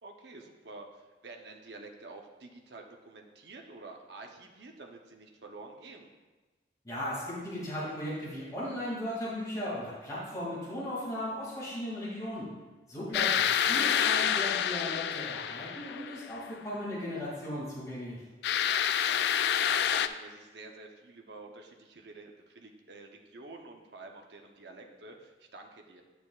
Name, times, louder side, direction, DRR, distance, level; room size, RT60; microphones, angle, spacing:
voice 1, 0.0-6.1 18.6-19.3 19.6-26.0, right 3 dB, 80° right, 2 dB, 0.8 m, -49 dB
voice 2, 6.8-12.5 12.9-18.2, left 1 dB, 20° left, -9 dB, 2.4 m, -37 dB
sound 1, 13.1-16.4 18.4-20.1, left 9 dB, 75° left, 0.3 m, -28 dB
10.5 x 6.7 x 2.4 m, 1.2 s
head